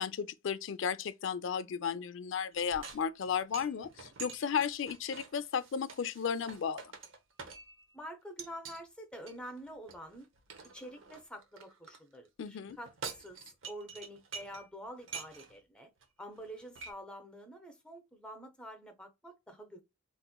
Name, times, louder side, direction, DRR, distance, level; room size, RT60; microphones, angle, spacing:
voice 1, 0.0-6.8 12.4-12.8, left 7 dB, 65° left, 0.4 m, -34 dB
sound 1, 2.5-7.9 8.4-8.8 9.3-12.0 12.7-14.7 15.0-15.6 16.0-16.1 16.4-16.9, right 5 dB, 75° right, 0.8 m, -47 dB
voice 2, 7.9-10.3 10.6-15.9 16.2-19.8, equal, 5° left, 0.7 m, -47 dB
4.1 x 2.5 x 2.2 m
head